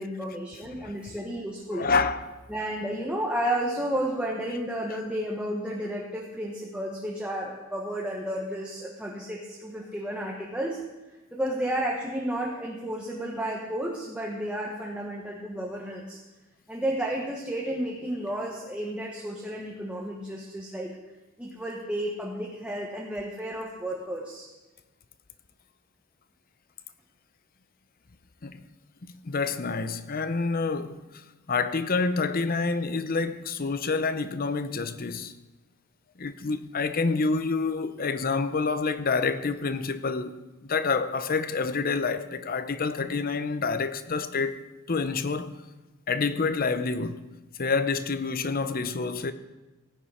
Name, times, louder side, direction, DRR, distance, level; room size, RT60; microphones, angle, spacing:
voice 1, 0.0-1.8 2.5-10.8 11.1-16.2 16.7-20.9 21.4-24.5, right 1 dB, 5° right, 1.3 m, -32 dB
voice 2, 1.7-2.4 28.4-28.6 29.0-31.0 31.5-35.3 36.2-45.6 46.1-47.2 47.6-49.3, left 4 dB, 45° left, 0.7 m, -28 dB
17.0 x 8.9 x 5.0 m
head